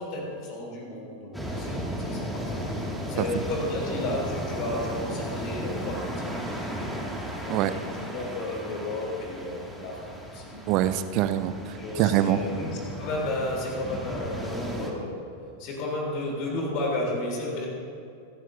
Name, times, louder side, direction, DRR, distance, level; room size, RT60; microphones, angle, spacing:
voice 1, 0.0-2.6 3.1-6.9 7.4-10.0 10.3-10.6 11.6-12.7 13.0-15.2 15.6-17.7, left 2 dB, 40° left, -1 dB, 3.5 m, -33 dB
sound 1, 1.3-14.9, equal, ahead, 2.2 m, -35 dB
voice 2, 10.7-11.6 12.0-12.4, right 13 dB, 40° right, 11 dB, 0.7 m, -23 dB
26.0 x 12.0 x 2.7 m, 2.5 s
figure-of-eight pair, 90°, 0 cm